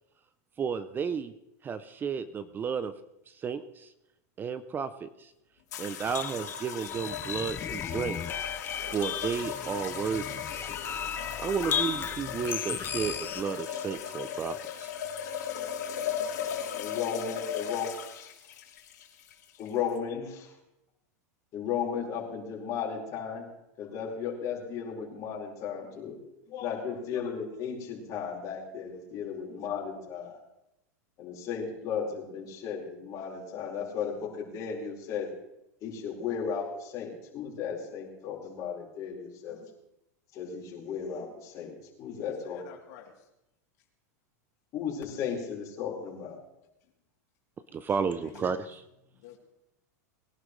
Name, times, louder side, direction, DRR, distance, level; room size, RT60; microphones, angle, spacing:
voice 1, 0.6-1.3 1.6-2.9 3.3-3.9 4.4-5.3 5.8-8.2 8.9-10.2 11.4-14.9 47.7-48.8, right 6 dB, 20° right, 0.6 m, -32 dB
sound 1, 5.7-20.0, left 8 dB, 85° left, 3.0 m, -37 dB
sound 2, 6.0-13.4, left 8 dB, 20° left, 0.5 m, -35 dB
voice 2, 16.7-18.3 19.6-20.5 21.5-23.5 23.8-26.2 26.5-30.4 31.2-35.3 35.8-39.6 40.3-42.6 44.7-46.4, left 7 dB, 40° left, 4.9 m, -35 dB
voice 3, 42.2-43.1 47.9-48.4 49.2-49.4, left 9 dB, 65° left, 3.3 m, -50 dB
21.5 x 11.5 x 3.3 m
supercardioid pair, 130°, 9 cm